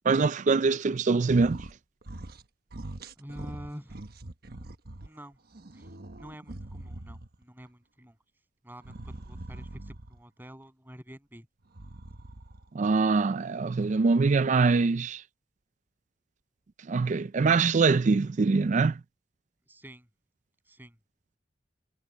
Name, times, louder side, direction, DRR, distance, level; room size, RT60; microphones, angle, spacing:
voice 1, 0.0-1.7 12.7-15.2 16.9-19.0, right 4 dB, 40° right, 0.4 m, -23 dB
sound 1, 1.2-1.8 2.0-2.4 2.7-5.1 5.5-7.4 8.8-10.2 11.6-12.7, right 1 dB, 60° right, 1.2 m, -43 dB
voice 2, 3.2-4.0 5.0-5.4 5.7-8.2 8.6-11.5 19.7-20.1 20.7-21.0, equal, 10° right, 7.8 m, -47 dB
head